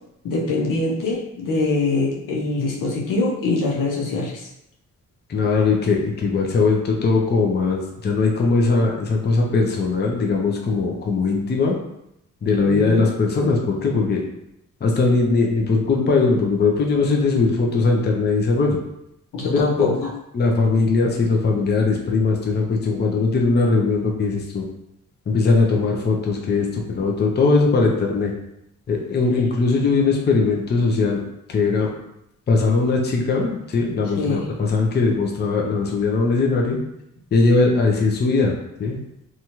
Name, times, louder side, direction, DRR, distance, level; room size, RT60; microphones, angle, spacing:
voice 1, 0.2-4.4 12.6-13.0 19.3-19.9 34.1-34.5, left 3 dB, 85° left, -3 dB, 0.8 m, -23 dB
voice 2, 5.3-11.8 12.4-14.2 14.8-18.8 19.4-24.6 25.3-28.3 28.9-31.2 31.5-31.9 32.5-36.8 37.3-38.5 38.8-39.0, left 3 dB, 35° left, 0 dB, 0.5 m, -20 dB
2.8 x 2.4 x 2.9 m, 0.82 s
cardioid pair, 95°, 32 cm